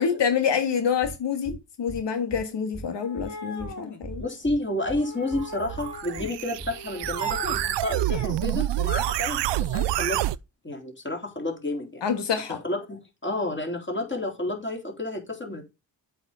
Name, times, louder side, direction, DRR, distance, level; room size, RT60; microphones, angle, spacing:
voice 1, 0.0-1.5 1.8-4.2 12.0-12.6, left 7 dB, 80° left, 1.6 m, -26 dB
sound 1, 1.0-1.2 1.4-1.6 1.9-2.0 2.3-2.4 2.7-2.9 3.2-3.3 3.6-3.7 4.0-4.6 4.9-5.0 5.3-5.4 5.7-5.9 6.2-6.3 6.6-6.7 7.0-7.2 7.4-7.7, right 2 dB, 10° right, 1.6 m, -38 dB
sound 2, 2.9-4.0 5.0-6.3 6.7-7.6 7.9-8.4, left 3 dB, 40° left, 2.4 m, -39 dB
voice 2, 4.2-9.4 9.7-10.2 10.6-12.0 12.5-15.6, left 1 dB, 25° left, 3.4 m, -30 dB
sound 3, 5.4-10.4, right 14 dB, 75° right, 0.5 m, -27 dB
8.0 x 5.0 x 5.5 m
cardioid pair, 70°, 42 cm